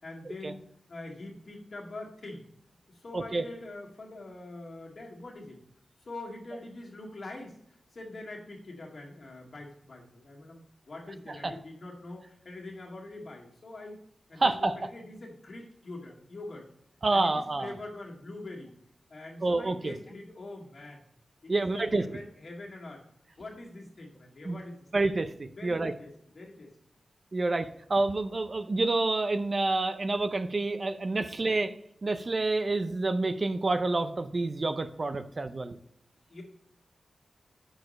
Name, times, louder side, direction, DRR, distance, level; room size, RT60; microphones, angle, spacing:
voice 1, 0.0-2.4 2.9-5.6 6.1-7.6 7.9-10.6 10.9-14.0 14.3-16.6 17.1-18.7 19.1-21.0 21.4-23.0 23.4-24.8 25.6-26.7 36.3-36.4, left 2 dB, 50° left, -2 dB, 1.9 m, -44 dB
voice 2, 3.1-3.4 11.3-11.5 14.4-14.7 17.0-17.7 19.4-19.9 21.5-22.0 24.4-24.6 24.9-25.3 25.6-25.9 27.3-31.7 32.0-35.8, right 2 dB, 35° right, 9 dB, 0.4 m, -28 dB
6.4 x 4.8 x 5.1 m, 0.69 s
wide cardioid pair, 130°, 0 cm